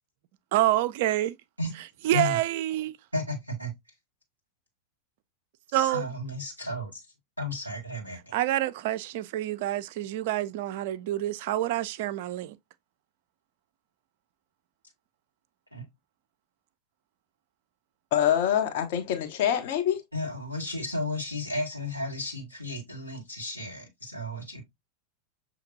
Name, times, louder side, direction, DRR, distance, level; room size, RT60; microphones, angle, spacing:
voice 1, 0.5-1.4 2.0-2.9 5.7-6.1 8.3-12.6, right 14 dB, 50° right, 0.3 m, -27 dB
voice 2, 3.1-3.7 5.8-7.0 7.4-8.3 15.7-15.9 20.1-24.6, left 2 dB, 90° left, 1.7 m, -33 dB
voice 3, 18.1-20.0, left 10 dB, 50° left, 0.8 m, -25 dB
6.5 x 2.9 x 2.5 m
figure-of-eight pair, 90°, 0 cm